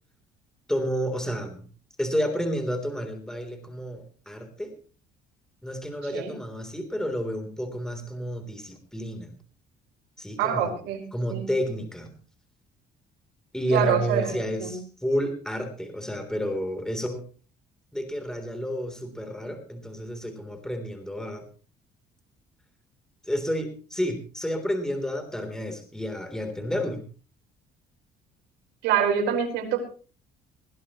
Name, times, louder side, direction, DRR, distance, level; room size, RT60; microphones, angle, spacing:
voice 1, 0.7-1.6 2.0-4.7 5.6-9.3 10.2-10.8 11.1-12.1 13.5-17.2 17.9-21.5 23.2-27.0, equal, 5° left, 6 dB, 3.6 m, -30 dB
voice 2, 10.4-11.0 11.3-11.5 13.7-14.8 28.8-29.8, right 8 dB, 90° right, 2 dB, 5.0 m, -25 dB
20.5 x 16.5 x 3.1 m, 0.38 s
cardioid pair, 110°, 17 cm